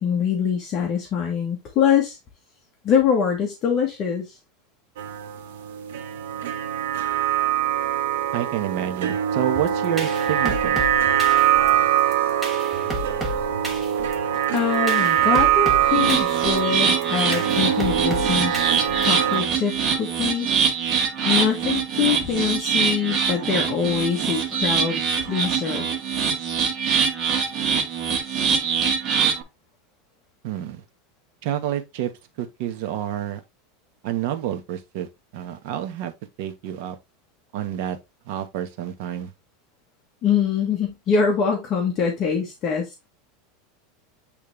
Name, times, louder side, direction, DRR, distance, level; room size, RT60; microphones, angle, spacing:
voice 1, 0.0-2.2 2.8-4.4 14.5-18.5 19.0-20.5 21.2-25.9 40.2-43.1, left 7 dB, 30° left, 1.3 m, -24 dB
sound 1, 5.0-19.4, right 10 dB, 90° right, 1.0 m, -23 dB
voice 2, 8.3-10.8 30.4-30.8 31.4-32.1 32.4-33.4 34.0-35.1 35.3-36.1 36.4-37.0 37.5-38.0 38.3-39.3, right 11 dB, 55° right, 1.2 m, -28 dB
sound 2, 9.7-19.3, equal, 10° right, 1.3 m, -33 dB
sound 3, 15.9-29.4, right 6 dB, 30° right, 1.7 m, -24 dB
8.9 x 3.3 x 3.2 m
supercardioid pair, 160°, 0 cm